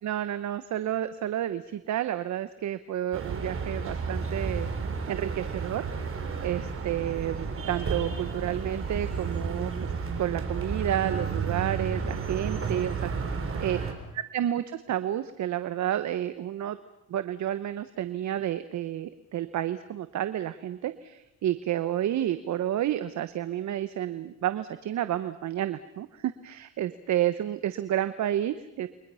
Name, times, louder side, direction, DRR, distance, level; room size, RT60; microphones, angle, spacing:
voice 1, 0.0-4.7 5.1-5.8 6.4-9.7 10.2-13.1 13.6-13.8 14.1-16.8 17.1-28.9, right 11 dB, 70° right, 12 dB, 1.1 m, -30 dB
sound 1, 3.1-13.9, right 5 dB, 45° right, 4.0 m, -32 dB
29.5 x 23.5 x 5.7 m, 0.89 s
cardioid pair, 90°, 30 cm